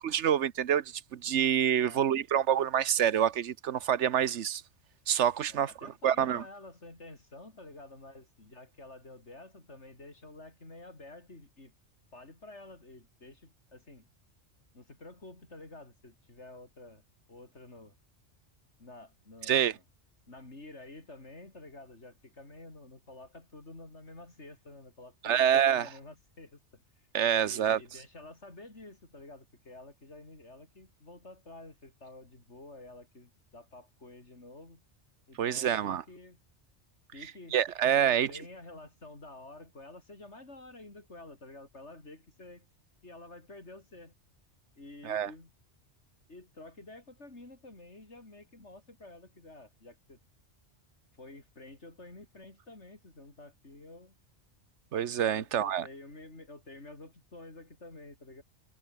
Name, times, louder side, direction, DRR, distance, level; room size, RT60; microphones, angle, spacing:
voice 1, 0.0-4.6 5.1-5.7 6.0-6.4 19.5-19.7 25.2-25.9 27.1-27.8 35.4-36.0 37.5-38.3 45.0-45.3 54.9-55.8, right 9 dB, 80° right, 1.1 m, -27 dB
voice 2, 5.5-11.7 12.1-14.1 14.7-17.0 17.3-17.9 18.8-19.8 20.3-26.8 27.4-34.8 35.3-36.4 37.1-37.6 37.9-42.7 43.0-44.1 44.8-45.5 46.3-50.2 51.2-54.2 55.3-58.4, left 2 dB, 75° left, 5.2 m, -50 dB
omnidirectional pair, 1.2 m